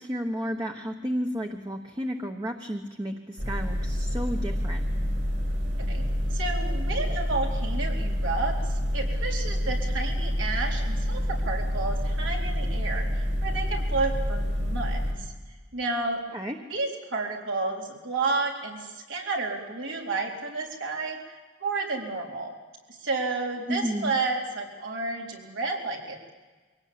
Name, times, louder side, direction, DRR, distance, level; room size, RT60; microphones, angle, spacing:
voice 1, 0.0-4.8 16.3-16.6 23.7-24.1, equal, 20° right, 2 dB, 1.1 m, -32 dB
sound 1, 3.4-15.1, equal, 60° right, 4.5 m, -28 dB
voice 2, 6.3-15.3 15.7-16.2 16.7-22.5 22.9-26.3, right 3 dB, 75° right, -1 dB, 4.2 m, -31 dB
24.0 x 17.5 x 8.7 m, 1.3 s
head